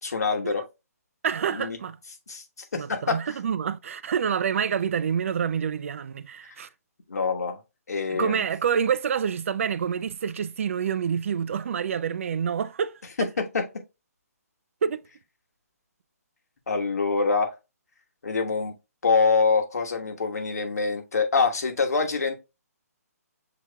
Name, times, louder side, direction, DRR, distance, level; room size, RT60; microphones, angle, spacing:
voice 1, 0.0-0.6 1.5-1.8 2.3-2.4 2.7-3.2 7.1-7.6 7.9-8.4 13.2-13.6 16.7-17.5 18.2-18.7 19.0-22.3, left 4 dB, 75° left, 1.2 m, -25 dB
voice 2, 1.2-2.0 2.7-6.7 8.1-13.0 14.8-15.1, right 7 dB, 55° right, 0.3 m, -27 dB
6.9 x 2.9 x 2.2 m
figure-of-eight pair, 145°, 9 cm